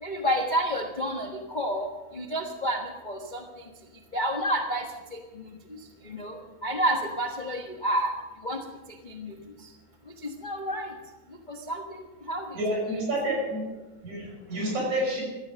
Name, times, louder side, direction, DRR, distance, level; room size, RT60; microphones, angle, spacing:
voice 1, 0.0-1.9 2.1-2.8 3.0-3.4 4.1-4.8 6.1-6.3 6.6-8.1 8.4-8.6 9.1-9.3 10.2-10.9 11.5-11.8 12.3-12.4, equal, 90° left, 2 dB, 0.4 m, -29 dB
voice 2, 12.5-13.7 14.0-15.2, right 1 dB, 70° right, -1 dB, 7.2 m, -29 dB
15.5 x 13.5 x 6.3 m, 1.2 s
omnidirectional pair, 3.4 m